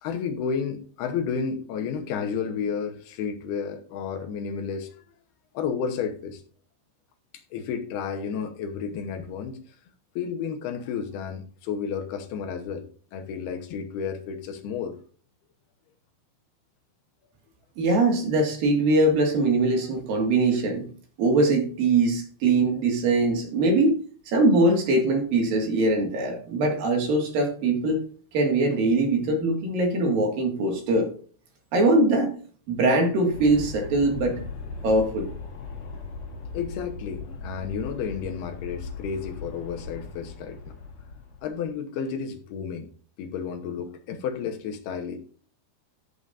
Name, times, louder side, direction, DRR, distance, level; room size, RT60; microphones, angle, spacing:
voice 1, 0.0-4.9 5.5-6.4 7.5-9.8 10.2-15.0 36.5-40.7 41.4-42.9 43.2-45.2, left 6 dB, 75° left, 5 dB, 2.9 m, -32 dB
voice 2, 17.8-20.9 21.2-24.0 24.3-28.0 28.3-31.1 31.7-32.3 32.7-34.4 34.8-35.3, right 2 dB, 60° right, 2 dB, 3.5 m, -22 dB
Aircraft, 33.3-41.7, left 4 dB, 60° left, 4.9 m, -38 dB
14.0 x 8.1 x 2.6 m, 0.42 s
omnidirectional pair, 4.8 m